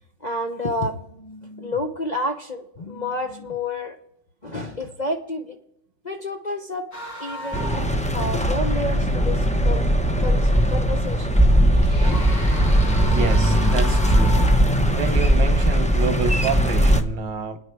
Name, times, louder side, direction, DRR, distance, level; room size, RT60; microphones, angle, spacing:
voice 1, 0.2-4.0 4.4-5.6 6.0-6.9 7.2-7.7 8.1-9.9 10.2-11.3 11.7-11.8, left 1 dB, 35° left, 2 dB, 0.7 m, -29 dB
sound 1, 6.9-8.1 8.3-8.4 10.4-10.9 11.7-15.1, left 1 dB, 55° left, 3.0 m, -35 dB
sound 2, 7.5-17.0, equal, 10° left, 0.3 m, -19 dB
voice 2, 13.0-14.4 14.9-17.6, right 5 dB, 90° right, 9 dB, 2.0 m, -28 dB
27.5 x 9.8 x 4.7 m, 0.79 s
omnidirectional pair, 1.9 m